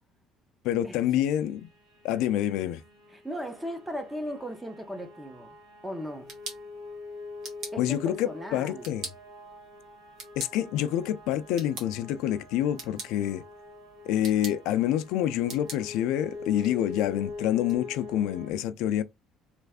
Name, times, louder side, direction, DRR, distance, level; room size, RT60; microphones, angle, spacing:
voice 1, 0.6-1.6 2.0-2.8 7.8-9.1 10.4-13.4 14.1-19.0, left 11 dB, 70° left, 0.4 m, -27 dB
sound 1, 0.9-18.5, left 3 dB, 75° right, 2.2 m, -45 dB
voice 2, 3.1-5.6 5.8-6.3 7.7-8.9, equal, 5° right, 0.5 m, -37 dB
sound 2, 6.0-17.8, right 3 dB, 50° right, 1.3 m, -46 dB
3.2 x 2.5 x 3.4 m
cardioid pair, 180°, 0 cm